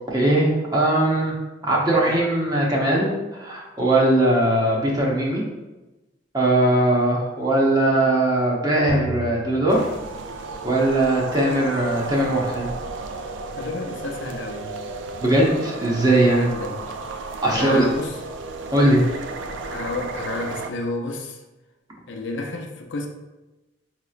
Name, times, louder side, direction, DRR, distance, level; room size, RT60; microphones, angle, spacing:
voice 1, 0.1-1.3 1.6-5.4 6.3-9.9 10.6-12.7 15.2-16.4 17.4-17.9 18.7-19.0, right 1 dB, 20° right, -3 dB, 0.8 m, -20 dB
sound 1, 8.9-10.8, equal, 50° left, 0.9 m, -36 dB
sound 2, 9.7-20.7, right 3 dB, 75° right, 0.3 m, -33 dB
voice 2, 13.6-14.7 16.2-16.8 17.5-18.2 19.7-21.4 22.1-23.1, left 2 dB, 75° left, 2 dB, 0.6 m, -31 dB
5.3 x 3.0 x 2.4 m, 1.1 s
head